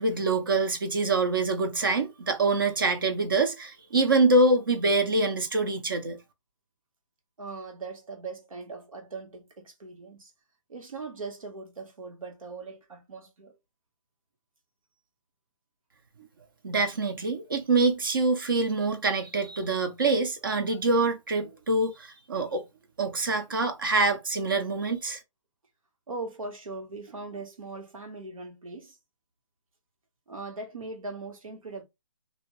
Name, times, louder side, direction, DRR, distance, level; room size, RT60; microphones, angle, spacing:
voice 1, 0.0-6.2 16.6-22.6 23.0-25.2, right 3 dB, 40° right, 0.6 m, -25 dB
voice 2, 7.4-10.3 10.7-13.5 23.2-23.3 26.1-29.0 30.3-31.8, right 3 dB, 90° right, 1.4 m, -40 dB
2.7 x 2.2 x 3.0 m
hypercardioid pair, 175°, 17 cm